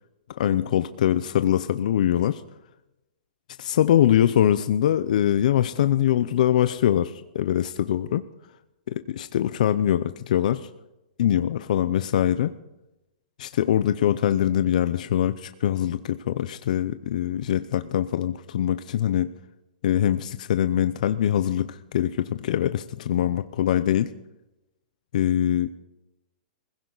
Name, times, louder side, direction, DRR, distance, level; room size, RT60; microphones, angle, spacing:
voice 1, 0.4-2.4 3.6-8.2 8.9-10.7 11.2-12.5 13.4-19.3 19.8-24.1 25.1-25.7, left 11 dB, 60° left, 11 dB, 0.7 m, -23 dB
21.0 x 16.0 x 4.0 m, 0.95 s
hypercardioid pair, 165°, 5 cm